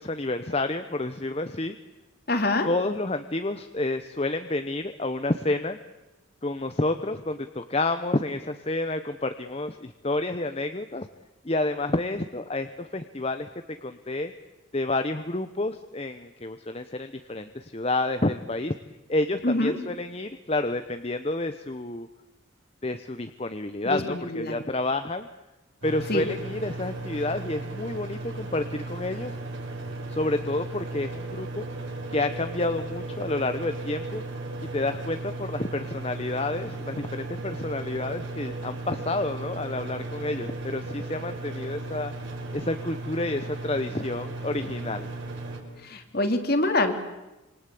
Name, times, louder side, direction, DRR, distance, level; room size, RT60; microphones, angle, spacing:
voice 1, 0.0-1.8 2.7-5.8 6.4-11.1 11.4-13.5 13.8-14.3 14.7-18.7 19.1-22.1 22.8-25.3 25.8-29.4 30.1-31.7 32.1-34.2 34.7-42.1 42.5-45.1, left 2 dB, 30° left, 8 dB, 0.9 m, -29 dB
voice 2, 2.3-2.7 19.4-19.8 23.8-24.5 26.1-26.3 45.8-46.9, left 2 dB, 45° left, 6 dB, 2.9 m, -25 dB
sound 1, 25.8-45.6, right 2 dB, 60° right, 6.0 m, -36 dB
27.0 x 25.5 x 8.5 m, 1.0 s
head